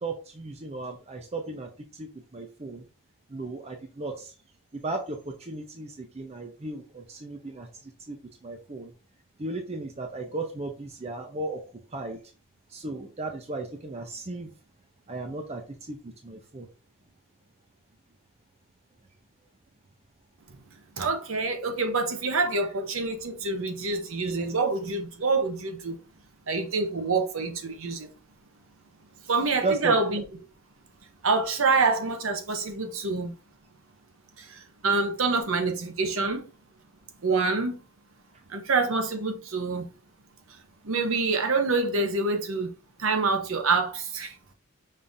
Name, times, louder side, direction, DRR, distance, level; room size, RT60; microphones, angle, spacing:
voice 1, 0.0-2.8 3.3-4.3 4.7-8.9 9.4-11.6 11.9-12.2 12.7-14.5 15.1-15.6 15.9-16.7 29.6-29.9, right 3 dB, 30° right, 0.6 m, -35 dB
voice 2, 21.0-26.0 26.5-28.1 29.3-30.2 31.2-33.3 34.4-36.5 37.2-37.8 38.5-39.9 40.8-42.7 43.0-44.3, right 3 dB, 65° right, 0.8 m, -26 dB
5.5 x 3.6 x 2.6 m
head